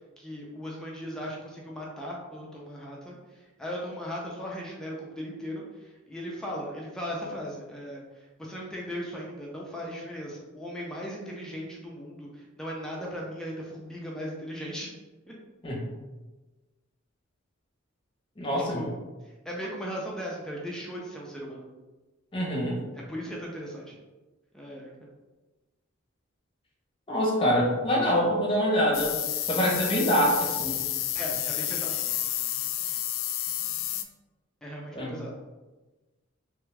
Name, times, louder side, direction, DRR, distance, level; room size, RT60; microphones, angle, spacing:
voice 1, 0.2-3.2 3.6-8.0 8.4-14.9 15.3-15.4 18.7-19.0 19.4-21.6 22.9-23.9 24.5-24.9 31.1-32.0 34.6-35.4, equal, 5° left, -4 dB, 0.4 m, -37 dB
voice 2, 18.4-18.8 22.3-22.8 27.1-29.2 29.5-30.8 34.9-35.2, equal, 25° left, -3 dB, 0.8 m, -25 dB
sound 1, 28.9-34.0, left 12 dB, 80° left, 0.3 m, -30 dB
3.3 x 2.3 x 3.1 m, 1.2 s
head